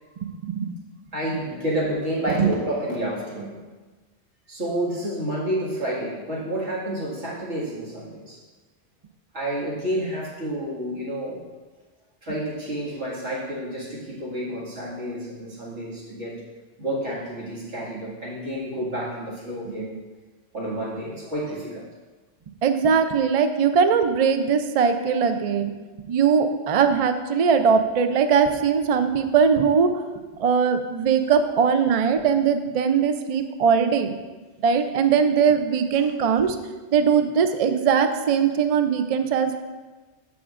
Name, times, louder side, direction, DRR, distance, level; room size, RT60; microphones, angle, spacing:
voice 1, 1.1-3.6 4.5-8.4 9.3-11.4 12.2-16.4 16.8-20.0 20.5-21.9 35.9-36.1, right 1 dB, 85° right, -6 dB, 2.3 m, -29 dB
voice 2, 22.6-25.7 26.1-29.9 30.4-34.1 34.6-36.6 36.9-39.6, right 6 dB, 60° right, 8 dB, 0.3 m, -20 dB
14.0 x 5.0 x 2.5 m, 1.3 s
omnidirectional pair, 1.2 m